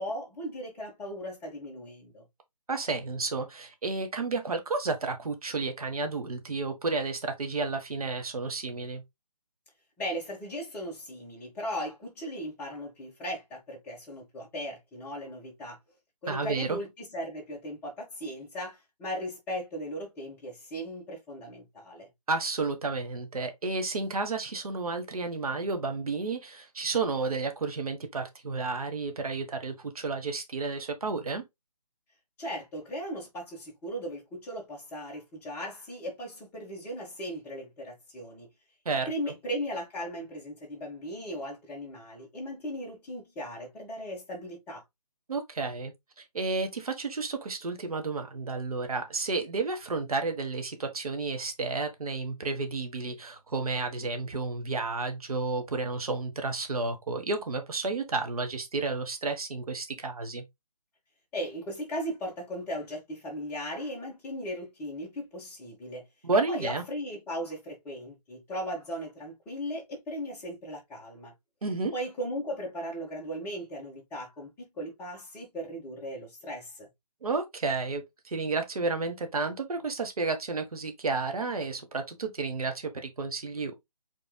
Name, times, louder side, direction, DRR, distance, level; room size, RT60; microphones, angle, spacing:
voice 1, 0.0-2.2 10.0-15.8 16.2-22.1 32.4-38.5 39.1-44.8 61.3-66.0 66.5-71.3 71.9-76.9, equal, 10° left, 1.7 m, -37 dB
voice 2, 2.7-9.0 16.3-16.8 22.3-31.4 38.8-39.1 45.3-60.4 66.2-66.8 71.6-71.9 77.2-83.8, right 3 dB, 65° right, 1.6 m, -31 dB
4.7 x 4.7 x 2.4 m
figure-of-eight pair, 155°, 20 cm